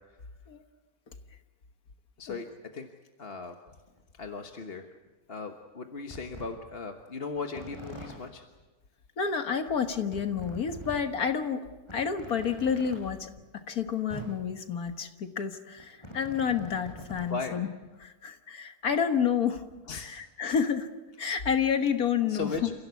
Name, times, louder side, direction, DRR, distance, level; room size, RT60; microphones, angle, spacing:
voice 1, 3.2-3.6 4.2-4.9 5.3-8.4 17.3-17.6 19.9-20.1 22.3-22.7, left 4 dB, 40° left, 4 dB, 1.4 m, -37 dB
sound 1, 3.9-4.0 5.1-5.2 5.6-5.7 6.1-6.4 7.4-8.1 9.3-9.4 9.5-9.6 10.1-11.0 11.4-11.5 11.9-13.0 13.8-13.9 14.1-14.3 15.5-17.3 17.8-17.9, equal, 20° left, 7.4 m, -43 dB
voice 2, 9.2-11.7 11.9-13.3 13.7-17.7 18.0-19.6 19.9-20.9 21.2-22.7, left 7 dB, 75° left, 7 dB, 1.9 m, -29 dB
29.5 x 16.5 x 8.3 m, 1.2 s
omnidirectional pair, 1.6 m